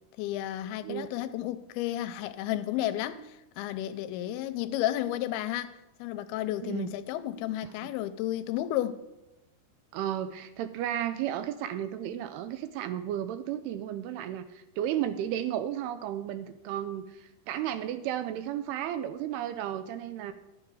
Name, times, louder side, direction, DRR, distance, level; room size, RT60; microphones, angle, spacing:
voice 1, 0.2-9.0, left 13 dB, 80° left, 2.4 m, -32 dB
voice 2, 6.6-6.9 9.9-20.3, right 11 dB, 85° right, 2.5 m, -33 dB
12.0 x 7.0 x 4.8 m
omnidirectional pair, 4.6 m